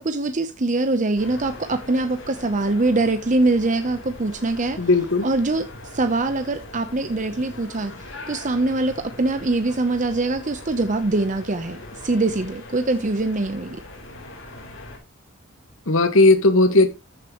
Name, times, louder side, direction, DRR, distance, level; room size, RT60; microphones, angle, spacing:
voice 1, 0.0-4.8 5.2-5.7 5.9-7.9 8.3-13.8, right 2 dB, 40° right, 0.7 m, -23 dB
sound 1, 1.2-15.0, left 2 dB, 65° left, 3.8 m, -41 dB
voice 2, 4.8-5.2 15.9-16.9, left 2 dB, 80° left, 1.6 m, -16 dB
14.0 x 6.8 x 3.0 m
head